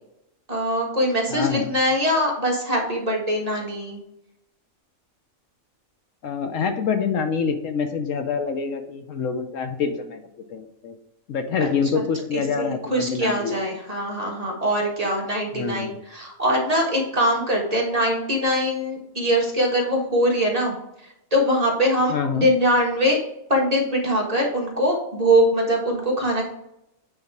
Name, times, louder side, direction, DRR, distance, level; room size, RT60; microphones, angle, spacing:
voice 1, 0.5-4.0 11.6-11.7 11.9-12.0 12.3-20.7 21.3-23.2 23.5-26.5, equal, 30° right, -1 dB, 1.5 m, -22 dB
voice 2, 1.3-1.7 6.2-10.2 10.5-11.0 11.3-13.6 15.5-16.0 22.1-22.5, left 6 dB, 70° left, 7 dB, 1.1 m, -26 dB
8.8 x 3.8 x 4.6 m, 0.83 s
omnidirectional pair, 1.4 m